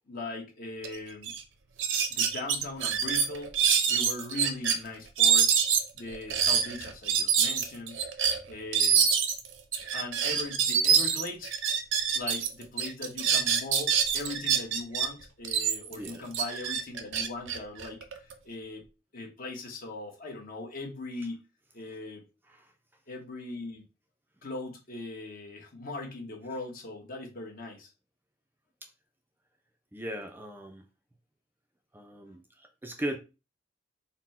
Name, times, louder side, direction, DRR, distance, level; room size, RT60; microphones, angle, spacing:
voice 1, 0.1-1.3 2.1-3.6 3.9-5.6 5.9-8.0 8.5-9.1 9.9-11.5 12.1-18.8 19.1-21.4 21.7-22.2 23.1-23.8 24.4-27.9, left 2 dB, 50° left, 1.2 m, -39 dB
sound 1, 0.8-0.9 1.2-1.4 1.8-4.8 5.2-12.5 12.8-15.1 15.4-18.3, right 7 dB, 70° right, 0.7 m, -26 dB
voice 2, 15.9-16.2 22.5-22.7 28.8-28.9 29.9-30.8 31.9-33.2, right 1 dB, 10° right, 0.4 m, -38 dB
4.1 x 2.1 x 4.2 m
head